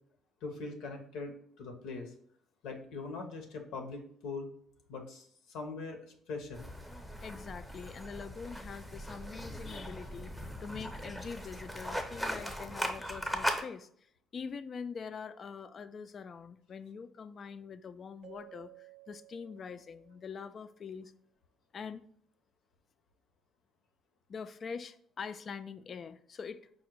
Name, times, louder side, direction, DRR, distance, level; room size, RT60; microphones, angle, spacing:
voice 1, 0.4-2.1 2.6-4.5 4.9-6.7, left 3 dB, 85° left, 4 dB, 0.8 m, -42 dB
sound 1, 6.5-13.6, equal, ahead, 0.7 m, -39 dB
voice 2, 7.2-21.1 21.7-22.0 24.3-26.6, left 6 dB, 45° left, 12 dB, 0.3 m, -44 dB
Keyboard (musical), 18.2-20.7, right 15 dB, 50° right, 0.4 m, -56 dB
4.9 x 2.1 x 4.5 m, 0.62 s
cardioid pair, 90°, 0 cm